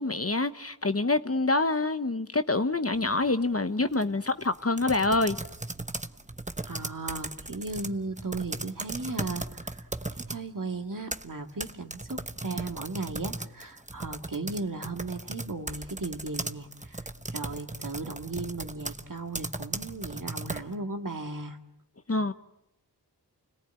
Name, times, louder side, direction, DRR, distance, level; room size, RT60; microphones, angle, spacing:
voice 1, 0.0-5.4 22.1-22.3, left 2 dB, 35° left, 0.9 m, -26 dB
sound 1, 2.9-3.3 3.8-10.4 10.9-20.7, right 2 dB, 15° right, 1.0 m, -37 dB
voice 2, 6.7-9.9 10.2-17.0 17.3-21.6, right 3 dB, 50° right, 2.0 m, -36 dB
29.5 x 18.0 x 8.9 m
wide cardioid pair, 55°, 41 cm